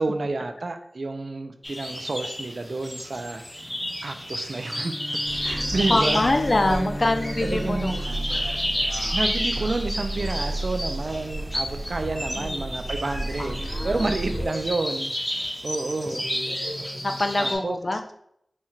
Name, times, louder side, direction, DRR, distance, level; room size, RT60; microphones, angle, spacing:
voice 1, 0.0-3.7 4.0-6.2 6.6-6.9 7.4-7.9 8.4-8.7 9.1-13.6 13.8-16.2 17.4-18.0, right 3 dB, 70° right, 6 dB, 0.4 m, -30 dB
sound 1, 1.6-17.5, equal, 15° left, 1.1 m, -31 dB
Bowed string instrument, 4.6-9.4, equal, 80° left, 1.1 m, -37 dB
sound 2, 5.2-14.5, right 2 dB, 50° right, 1.0 m, -33 dB
voice 2, 5.9-8.0 12.4-12.7 13.4-14.1 17.0-18.0, left 2 dB, 50° left, 6 dB, 0.5 m, -25 dB
4.2 x 2.4 x 4.4 m, 0.73 s
wide cardioid pair, 75°, 0 cm